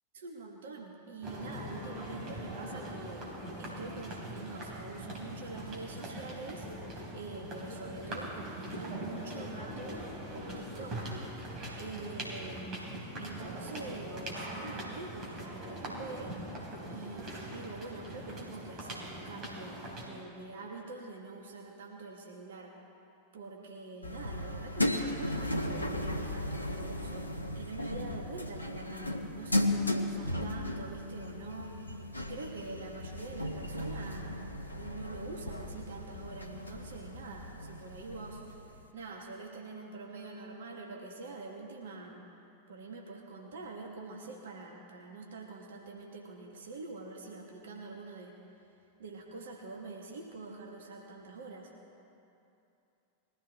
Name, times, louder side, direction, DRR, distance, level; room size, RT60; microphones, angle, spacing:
voice 1, 0.1-3.2 3.6-6.7 7.1-10.0 10.3-11.0 11.8-16.4 16.9-22.7 23.3-32.0 32.3-34.4 34.7-38.4 38.9-42.3 42.7-48.4 49.0-51.7, right 3 dB, 60° right, 0 dB, 1.7 m, -45 dB
sound 1, 1.2-20.1, right 1 dB, 35° right, 3.2 m, -42 dB
sound 2, 24.0-38.8, left 1 dB, 85° left, 0.9 m, -36 dB
21.5 x 14.0 x 3.5 m, 2.7 s
figure-of-eight pair, 90°, 0 cm